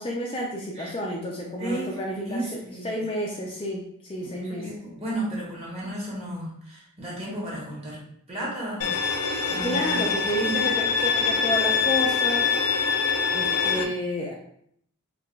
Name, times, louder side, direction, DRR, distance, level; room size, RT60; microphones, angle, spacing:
voice 1, 0.0-2.5 2.8-4.7 9.6-12.6 13.3-14.3, equal, 25° left, -2 dB, 0.4 m, -30 dB
voice 2, 1.6-3.0 4.2-8.0 8.3-8.9 9.2-10.0 10.3-10.6 13.7-13.9, right 1 dB, 25° right, -5 dB, 1.1 m, -34 dB
Bowed string instrument, 8.8-13.8, left 5 dB, 85° left, 0.4 m, -24 dB
4.6 x 2.3 x 2.2 m, 0.68 s
head